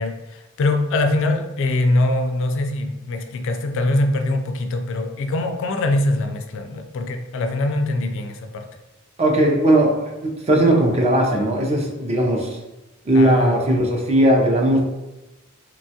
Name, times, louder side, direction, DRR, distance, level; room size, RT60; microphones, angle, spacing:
voice 1, 0.0-8.7 13.1-13.6, left 2 dB, 65° left, 6 dB, 0.3 m, -23 dB
voice 2, 9.2-12.6 13.1-14.8, right 1 dB, 30° right, 0 dB, 0.5 m, -18 dB
3.0 x 2.2 x 2.7 m, 1.0 s
head